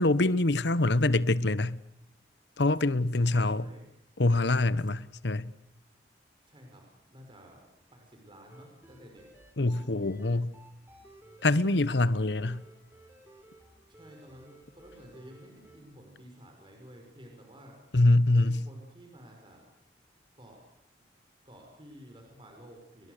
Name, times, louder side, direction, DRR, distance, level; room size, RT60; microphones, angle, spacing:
voice 1, 0.0-1.8 2.6-3.7 4.2-5.5 9.6-10.5 11.4-12.6 17.9-18.6, left 2 dB, 75° left, 1.1 m, -25 dB
voice 2, 3.1-3.9 6.4-9.3 9.7-10.2 13.9-17.8 18.3-19.7 20.4-20.6 21.4-23.1, equal, 30° right, 5.7 m, -52 dB
sound 1, 8.5-15.8, right 1 dB, 10° right, 6.0 m, -56 dB
29.5 x 22.0 x 6.7 m
head